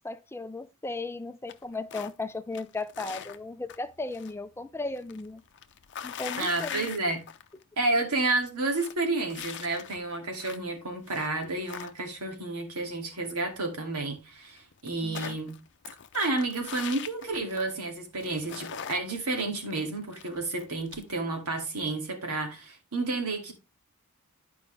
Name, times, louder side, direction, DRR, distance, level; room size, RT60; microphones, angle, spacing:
voice 1, 0.0-5.4 6.0-6.9 15.0-15.4, left 3 dB, 10° left, 0.4 m, -36 dB
sound 1, 1.5-2.2 2.5-4.4 4.6-7.6 8.0-8.1 8.4-10.7 11.1-12.3 13.9-14.0 14.2-14.3 14.6-17.9 18.2-21.2, left 8 dB, 50° left, 0.6 m, -42 dB
voice 2, 6.4-7.2 7.8-15.5 16.1-23.5, right 2 dB, 90° right, 2.4 m, -31 dB
11.0 x 5.2 x 3.4 m
head